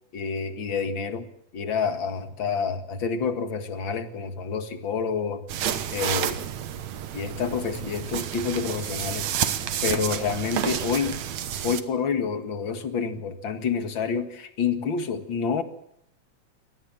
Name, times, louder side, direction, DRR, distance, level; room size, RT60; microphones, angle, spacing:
voice 1, 0.1-1.3 1.5-5.4 5.9-6.4 7.1-11.2 11.6-15.6, left 6 dB, 45° left, 9 dB, 2.4 m, -28 dB
sound 1, 5.5-11.8, right 10 dB, 70° right, 2.6 m, -30 dB
24.5 x 18.5 x 7.3 m, 0.71 s
omnidirectional pair, 3.3 m